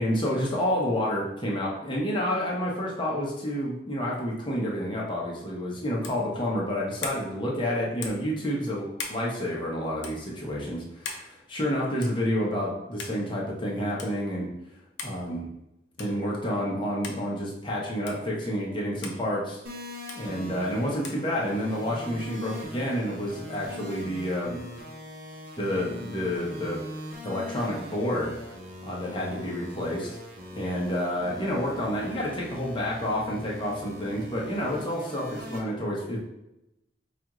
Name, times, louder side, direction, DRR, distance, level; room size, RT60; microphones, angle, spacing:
voice 1, 0.0-14.5 15.0-15.5 16.0-19.6 20.1-24.6 25.6-26.8 27.2-28.3 28.8-30.1 30.5-36.2, equal, 25° left, -3 dB, 0.8 m, -29 dB
sound 1, 6.0-6.3 7.0-7.2 8.0-8.3 9.0-9.2 10.0-10.2 11.1-11.3 12.0-12.2 13.0-13.2 14.0-14.1 15.0-15.2 16.0-16.2 17.0-17.2 18.1-18.2 19.0-19.2 20.1-20.2 21.0-21.2, left 4 dB, 60° left, 0.5 m, -38 dB
sound 2, 19.6-35.6, left 1 dB, 45° right, 0.8 m, -41 dB
4.9 x 2.4 x 3.0 m, 0.88 s
head